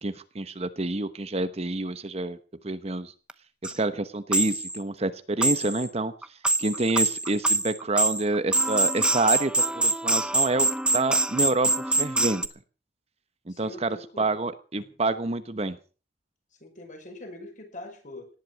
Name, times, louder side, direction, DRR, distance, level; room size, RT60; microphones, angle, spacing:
voice 1, 0.0-2.4 2.6-3.1 3.6-6.1 6.6-10.7 10.9-12.5 13.5-15.8, right 2 dB, 35° right, 12 dB, 1.0 m, -28 dB
sound 1, 3.3-3.4 3.6-3.8 4.3-4.8 5.4-5.9 6.2-12.5, right 2 dB, 5° right, 0.9 m, -25 dB
voice 2, 13.5-14.3 14.7-15.0 16.6-18.3, left 1 dB, 45° left, 5 dB, 5.8 m, -43 dB
18.5 x 11.0 x 6.3 m, 0.38 s
head